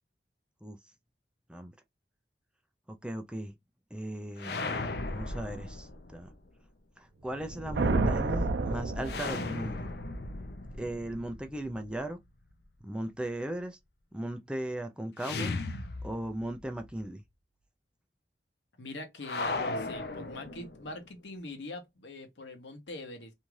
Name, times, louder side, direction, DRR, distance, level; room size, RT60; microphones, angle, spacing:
voice 1, 2.9-3.5 3.9-4.6 5.1-6.3 7.0-9.9 10.8-12.2 12.8-13.8 14.1-15.5 16.0-17.2, right 1 dB, 5° right, 0.3 m, -37 dB
sound 1, 4.4-6.3 9.0-12.0 15.2-16.6 16.9-17.0 19.2-21.0, left 3 dB, 65° left, 0.5 m, -36 dB
sound 2, 7.3-9.8, right 3 dB, 80° right, 0.5 m, -30 dB
voice 2, 18.8-23.3, left 2 dB, 85° left, 0.9 m, -43 dB
2.7 x 2.3 x 3.1 m
head